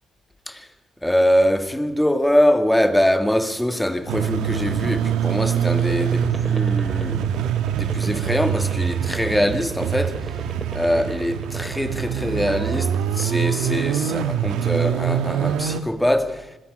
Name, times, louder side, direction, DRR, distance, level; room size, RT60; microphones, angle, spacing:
voice 1, 1.0-7.2 7.7-10.2 10.7-16.5, equal, 5° left, 2.0 m, -23 dB
sound 1, 4.0-12.1 12.5-13.3, right 3 dB, 25° right, 3.3 m, -36 dB
sound 2, 4.1-15.8, right 9 dB, 90° right, 1.4 m, -24 dB
27.0 x 21.5 x 5.6 m
cardioid pair, 90°, 0 cm